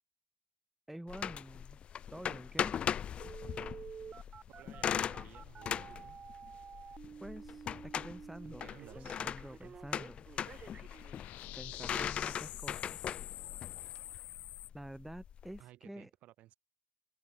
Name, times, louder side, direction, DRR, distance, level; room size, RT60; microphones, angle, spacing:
voice 1, 0.9-1.8 2.1-2.7 7.2-8.7 8.9-10.3 11.6-13.1 14.7-16.1, right 1 dB, 5° right, 2.0 m, -48 dB
sound 1, 1.1-15.6, left 8 dB, 45° left, 0.4 m, -39 dB
Telephone, 3.2-11.2 11.7-11.8, right 6 dB, 40° right, 1.9 m, -50 dB
voice 2, 4.6-6.2 8.4-9.2 11.6-12.3 15.6-16.5, right 15 dB, 70° right, 7.4 m, -56 dB
sound 2, 10.4-14.7, left 18 dB, 75° left, 2.0 m, -47 dB
supercardioid pair, 80°, 3 cm